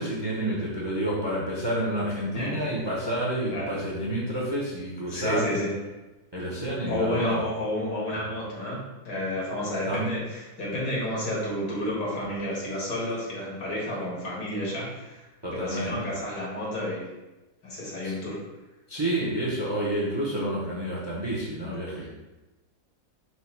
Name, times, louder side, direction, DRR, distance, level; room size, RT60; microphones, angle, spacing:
voice 1, 0.0-5.5 6.3-7.4 9.9-10.1 15.4-16.0 18.0-18.1 18.9-22.1, right 1 dB, 25° right, -5 dB, 0.6 m, -29 dB
voice 2, 5.1-5.7 6.9-8.8 9.0-17.1 17.6-18.4, left 1 dB, 80° left, -5 dB, 2.0 m, -30 dB
4.6 x 2.4 x 4.3 m, 1.1 s
omnidirectional pair, 1.7 m